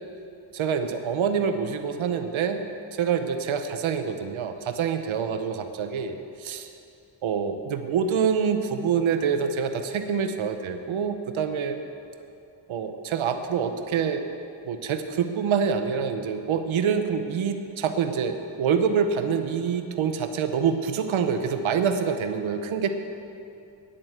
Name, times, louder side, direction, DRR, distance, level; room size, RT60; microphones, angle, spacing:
voice 1, 0.5-2.6 3.0-6.7 7.2-11.8 12.7-14.3 14.6-22.9, right 6 dB, 90° right, 7 dB, 0.8 m, -26 dB
10.0 x 7.6 x 8.0 m, 2.6 s
wide cardioid pair, 135°, 46 cm